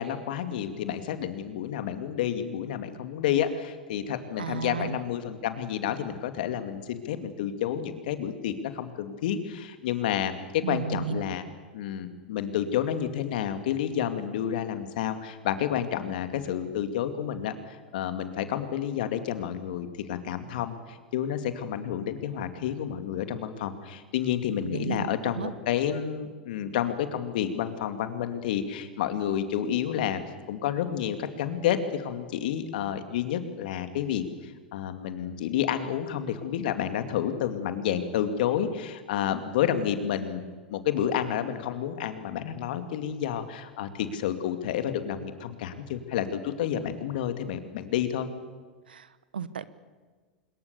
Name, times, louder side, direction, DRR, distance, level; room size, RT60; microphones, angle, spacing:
voice 1, 0.0-11.4 11.7-30.2 30.5-40.4 40.7-48.3, left 9 dB, 65° left, 9 dB, 2.4 m, -30 dB
voice 2, 4.4-5.0 10.6-11.2 24.7-25.1 25.4-25.5 48.9-49.1 49.3-49.7, right 7 dB, 85° right, 16 dB, 1.2 m, -33 dB
25.5 x 22.0 x 7.0 m, 1.4 s
hypercardioid pair, 95°, 5 cm